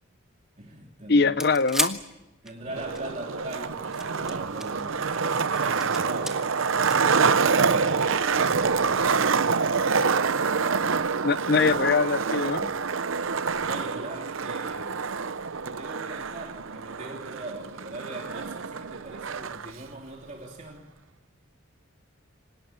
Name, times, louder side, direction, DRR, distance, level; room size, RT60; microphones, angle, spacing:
voice 1, 0.6-1.3 2.4-8.5 8.8-9.2 13.6-15.1 15.6-20.8, right 2 dB, 35° right, -1 dB, 3.1 m, -41 dB
voice 2, 1.1-2.0 11.2-12.7, left 4 dB, 50° left, 15 dB, 0.8 m, -22 dB
sound 1, 1.2-3.0 3.8-4.8 5.3-6.3 6.9-7.7 8.8-8.9, right 1 dB, ahead, 1.5 m, -33 dB
Skateboard, 2.7-19.7, right 5 dB, 75° right, 0.8 m, -26 dB
26.0 x 18.5 x 9.4 m, 1.0 s
head